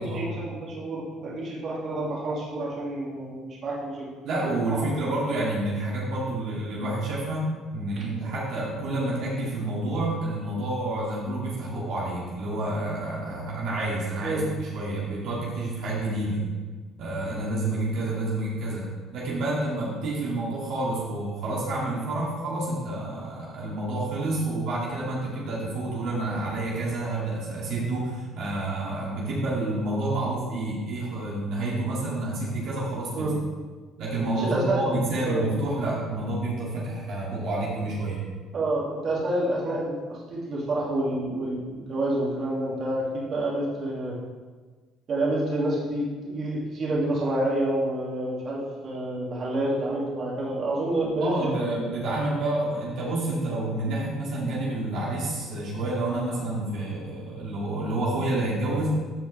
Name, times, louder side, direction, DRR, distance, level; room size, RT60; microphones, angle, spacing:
voice 1, 0.0-4.1 4.7-5.0 8.0-8.1 14.2-14.5 33.1-33.4 34.4-34.8 35.2-35.5 38.5-44.3 45.1-51.7, right 1 dB, 45° right, -5 dB, 2.6 m, -28 dB
voice 2, 4.2-16.4 17.0-18.8 19.1-33.3 34.0-38.2 51.2-58.9, right 2 dB, 70° right, -5 dB, 2.5 m, -29 dB
14.5 x 5.0 x 3.5 m, 1.4 s
cardioid pair, 105°, 0 cm